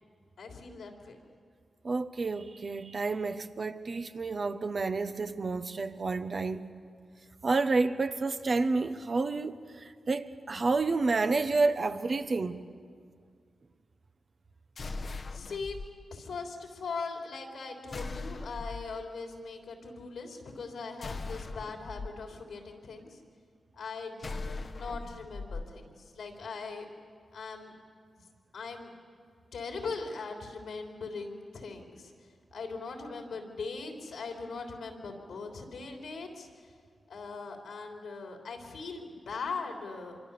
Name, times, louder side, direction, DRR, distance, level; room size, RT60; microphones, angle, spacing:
voice 1, 0.4-1.2 15.3-15.8 16.1-23.2 23.7-26.9 27.3-27.7 28.1-28.9 29.5-32.1 32.5-36.7 37.1-40.2, left 4 dB, 80° left, 3.4 m, -40 dB
voice 2, 1.8-6.7 7.4-12.6, right 3 dB, 55° right, 1.2 m, -30 dB
sound 1, 14.8-15.9 17.9-18.9 21.0-22.1 24.2-25.7, left 3 dB, 60° left, 1.2 m, -39 dB
25.5 x 24.0 x 7.0 m
supercardioid pair, 45°, 0 cm